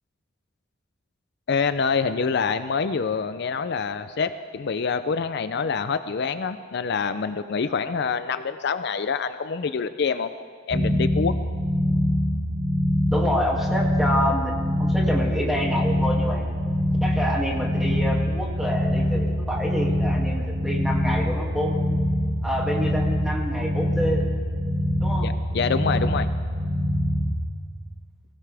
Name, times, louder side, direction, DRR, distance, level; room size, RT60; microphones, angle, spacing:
voice 1, 1.5-10.3 10.7-11.3 25.2-26.3, left 5 dB, 60° left, 11 dB, 0.5 m, -26 dB
sound 1, 10.7-27.3, equal, 75° right, 2.3 m, -24 dB
voice 2, 13.1-16.5 17.0-21.7 22.4-24.3 25.0-25.3, equal, ahead, -2 dB, 2.3 m, -27 dB
23.5 x 16.0 x 3.4 m, 2.2 s
head